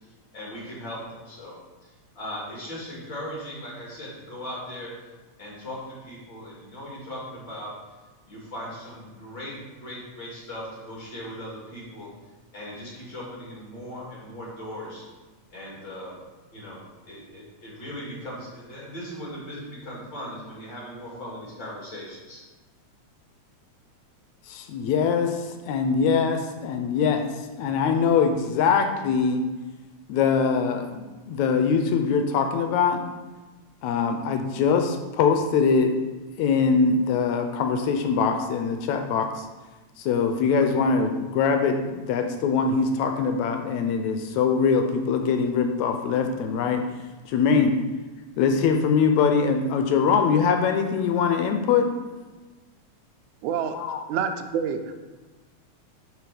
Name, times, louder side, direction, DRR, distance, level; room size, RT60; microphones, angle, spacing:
voice 1, 0.0-1.6 1.8-4.9 5.4-7.7 8.3-12.1 12.5-15.0 15.5-16.2 16.5-16.8 17.1-22.4 40.3-40.6, equal, 40° left, -5 dB, 2.8 m, -38 dB
voice 2, 24.5-27.3 27.6-29.4 30.1-33.0 33.8-35.9 36.4-39.5 40.0-46.8 47.3-47.8 48.4-51.9 53.7-54.0, left 5 dB, 80° left, 5 dB, 2.0 m, -23 dB
voice 3, 53.4-53.8 54.1-55.0, right 7 dB, 90° right, 7 dB, 2.1 m, -27 dB
10.0 x 4.1 x 4.9 m, 1.2 s
omnidirectional pair, 3.3 m